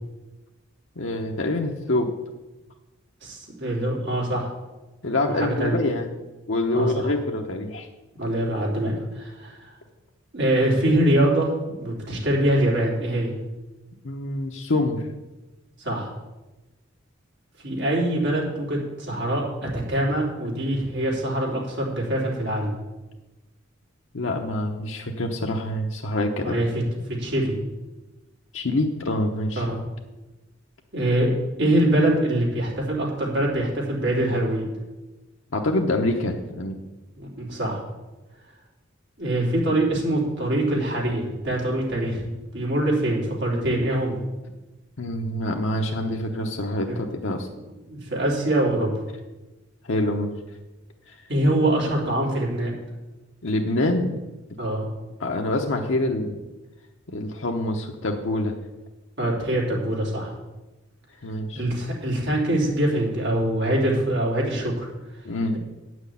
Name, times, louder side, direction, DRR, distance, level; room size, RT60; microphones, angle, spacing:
voice 1, 1.0-2.1 5.0-6.1 6.5-7.9 14.0-15.0 24.1-26.6 28.5-29.7 35.5-36.8 45.0-47.5 49.9-50.3 51.1-51.2 53.4-54.1 55.2-56.4 57.1-58.5 61.2-61.6 65.2-65.6, left 1 dB, 70° left, 1 dB, 0.9 m, -26 dB
voice 2, 3.2-4.5 5.3-5.8 6.7-7.1 8.2-9.7 10.3-13.4 15.8-16.1 17.6-22.7 26.4-26.7 27.1-27.6 29.6-29.8 30.9-31.3 31.6-34.6 37.2-37.8 39.2-44.2 46.9-47.0 47.9-48.9 51.3-52.7 54.6-54.9 59.2-60.3 61.5-64.9, right 1 dB, 60° right, -3 dB, 3.4 m, -24 dB
9.1 x 6.3 x 8.4 m, 1.1 s
head